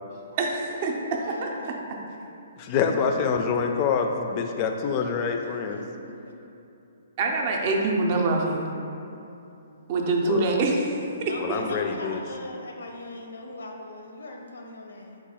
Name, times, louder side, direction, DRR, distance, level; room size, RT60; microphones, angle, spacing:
voice 1, 0.3-2.0 7.2-8.7 9.9-11.6, right 2 dB, 40° right, 1 dB, 0.5 m, -25 dB
voice 2, 1.2-1.9 5.7-6.3 11.3-15.2, left 2 dB, 85° left, 1 dB, 0.6 m, -39 dB
voice 3, 2.6-5.8 10.3-10.4 11.4-12.2, left 6 dB, 30° left, 4 dB, 0.3 m, -26 dB
4.5 x 2.3 x 4.2 m, 2.7 s
hypercardioid pair, 150°, 0 cm